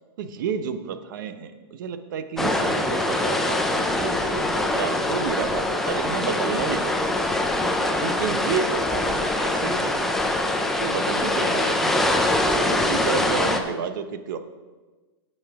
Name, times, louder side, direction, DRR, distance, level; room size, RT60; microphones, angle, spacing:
voice 1, 0.2-7.2 8.0-9.9 10.8-12.0 12.5-14.4, right 7 dB, 50° right, 9 dB, 0.7 m, -31 dB
sound 1, 2.4-13.6, left 1 dB, ahead, 0.4 m, -23 dB
15.5 x 5.4 x 3.5 m, 1.3 s
supercardioid pair, 165°, 13 cm